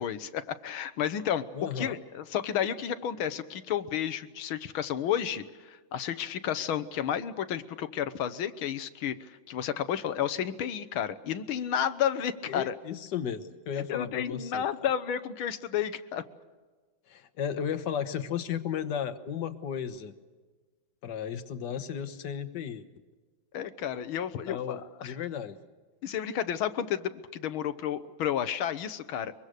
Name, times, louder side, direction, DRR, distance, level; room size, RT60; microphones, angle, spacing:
voice 1, 0.0-1.4 1.8-12.7 13.9-16.2 23.5-25.1 26.0-29.3, left 9 dB, 75° left, 12 dB, 1.8 m, -31 dB
voice 2, 1.5-2.0 12.5-14.9 17.1-20.1 21.0-22.9 24.5-25.6, left 8 dB, 60° left, 11 dB, 1.7 m, -34 dB
23.5 x 23.5 x 6.6 m, 1.3 s
omnidirectional pair, 2.3 m